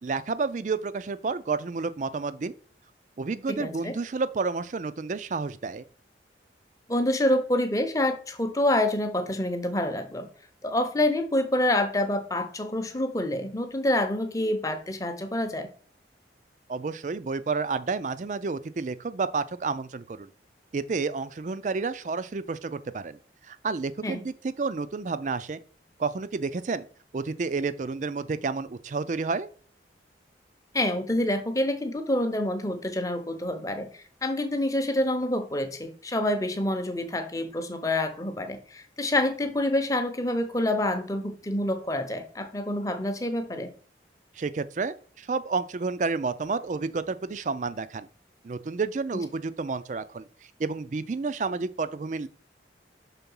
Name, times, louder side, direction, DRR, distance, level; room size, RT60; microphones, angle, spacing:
voice 1, 0.0-2.5 3.2-5.8 16.7-20.3 20.7-23.2 23.4-25.6 26.0-26.9 27.1-29.5 44.4-48.1 48.4-50.3 50.6-52.3, right 4 dB, 40° right, 0.4 m, -30 dB
voice 2, 3.5-4.0 6.9-10.3 10.6-15.7 24.0-24.2 30.7-43.7, left 1 dB, 20° left, 0.7 m, -27 dB
5.9 x 3.7 x 5.4 m
head